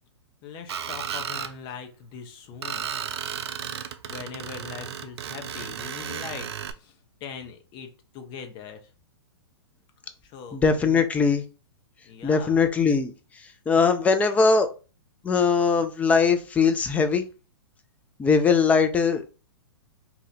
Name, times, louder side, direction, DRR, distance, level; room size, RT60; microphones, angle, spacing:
voice 1, 0.4-2.9 4.1-6.5 6.8-6.9 7.2-8.8 10.2-11.1 12.1-12.6, left 6 dB, 35° left, 0.7 m, -41 dB
Screech, 0.7-1.5 2.6-6.7, right 8 dB, 70° right, 0.5 m, -34 dB
voice 2, 10.5-11.4 12.2-13.1 13.7-14.7 15.2-17.3 18.2-19.3, left 5 dB, 10° left, 0.4 m, -21 dB
2.8 x 2.6 x 4.0 m
hypercardioid pair, 130°, 14 cm